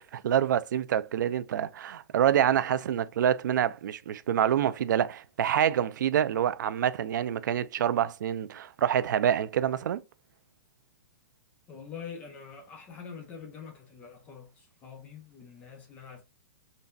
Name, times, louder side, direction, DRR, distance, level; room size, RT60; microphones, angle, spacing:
voice 1, 0.0-10.0, right 10 dB, 70° right, 0.3 m, -26 dB
voice 2, 11.7-16.2, left 6 dB, 15° left, 0.5 m, -45 dB
3.8 x 2.1 x 2.4 m
hypercardioid pair, 175°, 11 cm